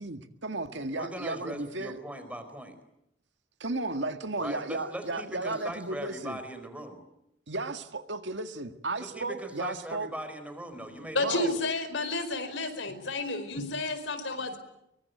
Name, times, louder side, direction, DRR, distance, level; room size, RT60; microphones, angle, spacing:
voice 1, 0.0-2.0 3.6-6.4 7.5-10.1 11.2-11.6, right 2 dB, 75° right, 8 dB, 1.9 m, -34 dB
voice 2, 0.7-2.8 4.4-7.0 9.0-11.6, right 1 dB, 10° right, 8 dB, 4.4 m, -40 dB
voice 3, 11.1-14.6, left 2 dB, 90° left, 10 dB, 4.7 m, -31 dB
24.5 x 23.5 x 9.4 m, 0.80 s
head